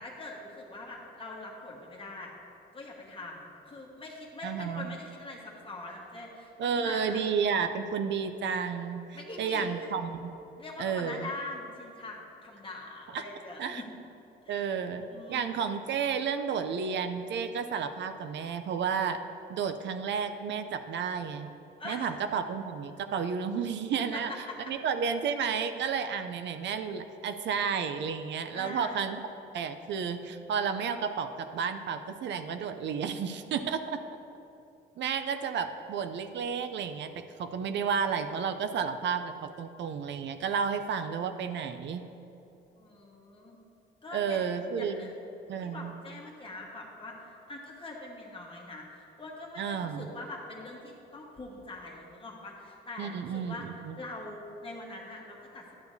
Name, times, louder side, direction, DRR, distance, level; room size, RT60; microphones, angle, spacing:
voice 1, 0.0-2.3 2.7-7.2 9.1-9.9 10.6-13.9 14.4-14.7 15.1-15.6 21.8-22.1 24.1-24.7 28.5-29.1 33.9-34.0 42.8-43.6 44.0-44.5 44.8-45.1 45.6-53.7 53.9-55.7, left 2 dB, 25° left, -2 dB, 1.4 m, -43 dB
voice 2, 4.4-4.9 6.6-10.3 10.8-11.3 13.1-13.2 13.6-13.8 14.5-15.0 15.3-19.2 19.5-21.5 21.8-24.3 24.7-29.2 29.5-34.0 35.0-37.1 37.4-42.1 44.1-45.1 45.5-45.9 49.6-50.1 53.0-54.0, right 6 dB, 65° right, 8 dB, 0.5 m, -32 dB
11.5 x 6.9 x 2.7 m, 2.9 s
cardioid pair, 90°, 20 cm